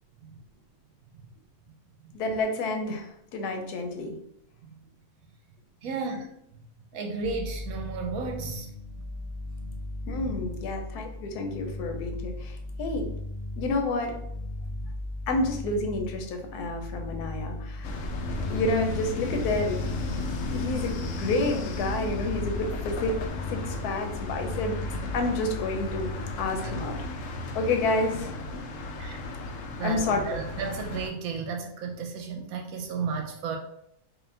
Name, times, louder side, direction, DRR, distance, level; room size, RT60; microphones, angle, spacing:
voice 1, 2.1-4.2 10.1-13.1 13.6-14.2 15.3-18.0 18.5-19.8 20.1-23.1 23.5-24.8 25.1-27.0 27.3-28.3 29.8-30.2, left 2 dB, 90° left, 5 dB, 1.2 m, -29 dB
voice 2, 5.8-6.2 6.9-8.7 26.6-26.7 29.0-29.2 29.7-33.6, right 5 dB, 75° right, 3 dB, 1.0 m, -33 dB
sound 1, 7.2-27.1, left 1 dB, 25° left, 0.9 m, -37 dB
sound 2, 17.8-31.1, left 2 dB, 65° left, 0.8 m, -34 dB
3.8 x 2.7 x 3.3 m, 0.76 s
omnidirectional pair, 1.6 m